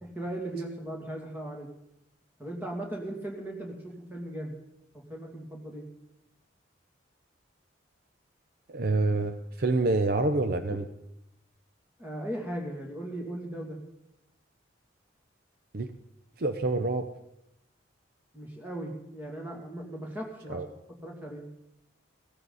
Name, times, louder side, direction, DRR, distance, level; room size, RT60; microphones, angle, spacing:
voice 1, 0.0-1.7 2.4-4.5 4.9-5.9 10.7-10.8 12.0-13.8 18.3-20.6 21.0-21.4, right 1 dB, 10° right, -1 dB, 2.5 m, -37 dB
voice 2, 8.7-10.8 15.7-15.9 16.4-17.1 20.5-20.7, right 2 dB, 50° right, 8 dB, 0.7 m, -27 dB
16.5 x 14.5 x 4.1 m, 0.83 s
head